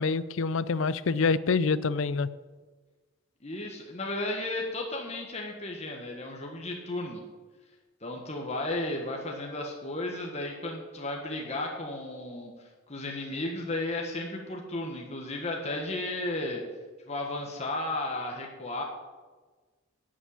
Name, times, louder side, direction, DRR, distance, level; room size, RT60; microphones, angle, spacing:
voice 1, 0.0-2.3, left 4 dB, 65° left, 16 dB, 0.5 m, -26 dB
voice 2, 3.4-7.2 8.0-12.5 12.9-16.6 17.1-18.8, left 2 dB, 30° left, 1 dB, 1.4 m, -34 dB
11.0 x 7.5 x 8.6 m, 1.3 s
head